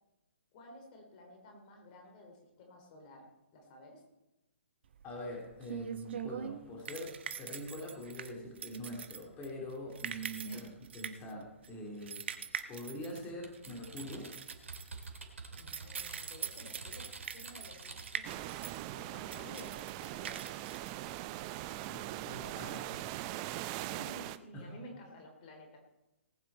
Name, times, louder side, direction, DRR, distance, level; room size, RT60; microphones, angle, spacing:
voice 1, 0.5-4.0 10.4-10.7 15.5-18.5 18.9-20.5 22.4-22.5 23.7-25.8, left 1 dB, 40° left, 2 dB, 3.3 m, -53 dB
sound 1, 4.9-21.6, right 8 dB, 55° right, 1.1 m, -44 dB
voice 2, 5.0-10.7 10.9-12.2 12.7-14.3 21.7-23.1 24.5-24.7, equal, 20° left, -1 dB, 3.2 m, -44 dB
Typing, 13.4-18.3, right 3 dB, 75° right, 2.5 m, -48 dB
sound 2, 18.2-24.4, right 15 dB, 30° right, 0.5 m, -41 dB
19.0 x 9.3 x 4.4 m, 0.96 s
figure-of-eight pair, 130°, 7 cm